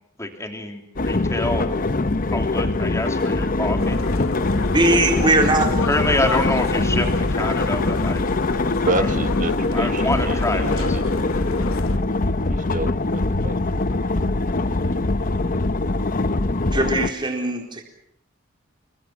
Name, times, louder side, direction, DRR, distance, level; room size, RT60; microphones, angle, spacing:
voice 1, 0.2-1.7 2.3-4.0 5.9-8.2 8.9-9.1 9.7-11.0, left 1 dB, 15° left, 5 dB, 3.2 m, -26 dB
sound 1, 1.0-17.1, left 2 dB, 40° left, 0.9 m, -23 dB
sound 2, 3.8-12.0, left 3 dB, 90° left, 1.1 m, -28 dB
voice 2, 4.7-5.7 16.7-17.8, right 2 dB, 25° right, 2 dB, 4.3 m, -19 dB
voice 3, 8.8-11.3 12.5-13.8, right 2 dB, 40° right, 13 dB, 1.1 m, -30 dB
29.0 x 22.5 x 6.0 m, 0.72 s
head